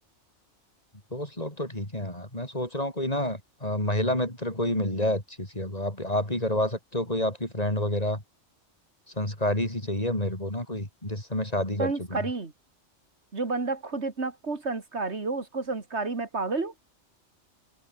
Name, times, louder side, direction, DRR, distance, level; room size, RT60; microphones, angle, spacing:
voice 1, 1.1-8.2 9.2-12.2, left 1 dB, 35° left, 6.4 m, -29 dB
voice 2, 11.8-12.5 13.3-16.7, right 3 dB, 70° right, 2.8 m, -30 dB
omnidirectional pair, 1.2 m